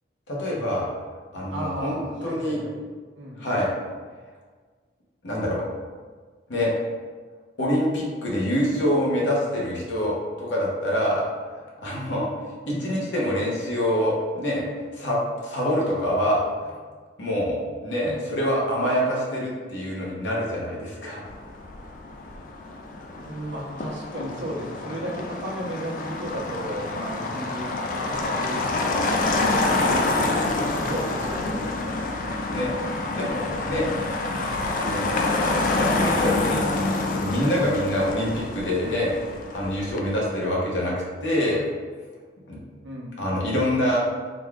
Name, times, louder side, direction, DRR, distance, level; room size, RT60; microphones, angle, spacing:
voice 1, 0.3-0.9 1.3-2.6 3.4-3.7 5.2-5.6 6.5-6.7 7.6-11.2 11.8-14.6 14.9-16.7 17.2-17.6 17.8-21.2 32.5-32.7 33.1-33.9 34.7-35.1 35.7-39.1 39.5-40.9 41.2-41.6 42.5-42.6 43.2-44.0, equal, 85° left, -4 dB, 1.0 m, -25 dB
voice 2, 1.5-2.8 3.2-3.5 9.2-9.3 12.7-13.0 18.0-18.4 23.1-32.0 34.3-34.6 42.8-43.2, equal, 85° right, -2 dB, 0.8 m, -35 dB
Motor vehicle (road), 21.2-40.0, left 2 dB, 45° left, 0.3 m, -27 dB
3.9 x 2.3 x 3.4 m, 1.5 s
head